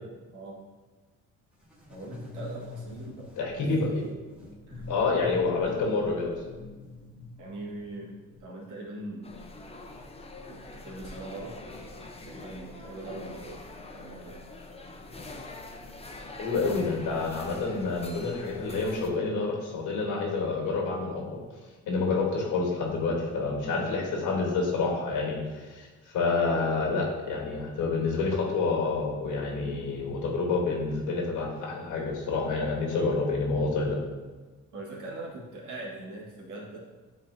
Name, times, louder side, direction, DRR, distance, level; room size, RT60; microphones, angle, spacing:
sound 1, 1.6-8.4, left 1 dB, 5° right, 1.5 m, -44 dB
voice 1, 1.9-3.9 4.7-4.9 7.4-8.1 8.4-9.3 10.5-11.6 12.2-13.6 13.9-14.4 34.7-36.8, right 2 dB, 80° right, -3 dB, 1.7 m, -41 dB
voice 2, 3.4-4.0 4.9-6.4 16.4-21.4 21.9-34.0, left 3 dB, 85° left, 0 dB, 1.4 m, -28 dB
sound 2, 9.2-19.1, left 2 dB, 20° left, 0.7 m, -44 dB
9.2 x 3.8 x 2.7 m, 1.3 s
cardioid pair, 90°, 30 cm